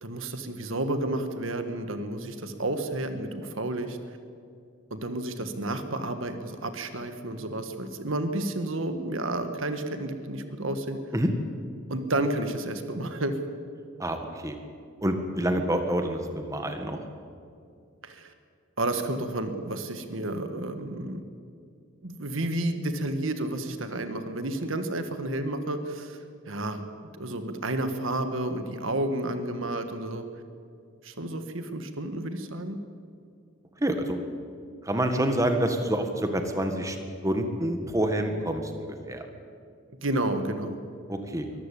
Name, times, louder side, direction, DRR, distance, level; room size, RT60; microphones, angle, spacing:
voice 1, 0.0-4.0 4.9-11.0 11.9-13.4 18.0-18.3 18.8-21.2 22.0-26.2 26.5-26.8 27.2-30.2 31.0-32.8 40.0-40.8, right 1 dB, 70° right, 8 dB, 1.6 m, -31 dB
voice 2, 14.0-14.6 15.0-17.0 33.8-34.2 34.8-37.0 37.2-39.2 41.1-41.5, right 1 dB, 15° right, 5 dB, 1.6 m, -27 dB
23.0 x 14.0 x 8.6 m, 2.4 s
head